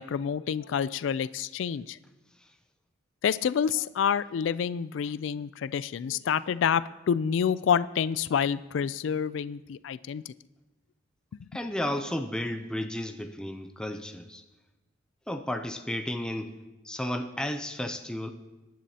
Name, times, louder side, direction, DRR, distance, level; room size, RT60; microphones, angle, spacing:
voice 1, 0.0-2.0 3.2-10.3, left 7 dB, 65° left, 16 dB, 0.3 m, -28 dB
voice 2, 11.5-14.4 15.3-16.5 16.8-18.3, left 1 dB, 5° left, 6 dB, 0.5 m, -33 dB
22.0 x 10.5 x 2.8 m, 1.1 s
head